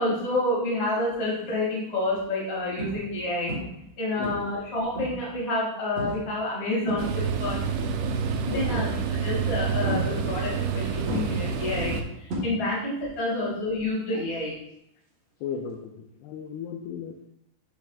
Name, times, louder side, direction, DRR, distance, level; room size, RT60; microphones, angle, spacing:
voice 1, 0.0-3.5 4.0-7.6 8.4-12.0 12.4-14.5, left 2 dB, 25° left, -5 dB, 1.4 m, -28 dB
sound 1, 1.1-1.5 2.0-2.2 2.8-3.2 3.5-3.9 4.2-5.3 6.0-6.3 6.6-7.5 8.7-9.2 9.8-10.7 11.1-13.0 13.2-13.6 15.7-15.8, equal, 60° right, 1.8 m, -34 dB
voice 2, 4.2-4.5 8.5-8.9 11.9-12.0 13.4-13.5 14.1-14.3 15.4-17.2, left 7 dB, 85° left, 3 dB, 2.3 m, -36 dB
sound 2, 7.0-12.0, right 6 dB, 80° right, 2.7 m, -28 dB
8.2 x 7.1 x 2.5 m, 0.79 s
omnidirectional pair, 5.3 m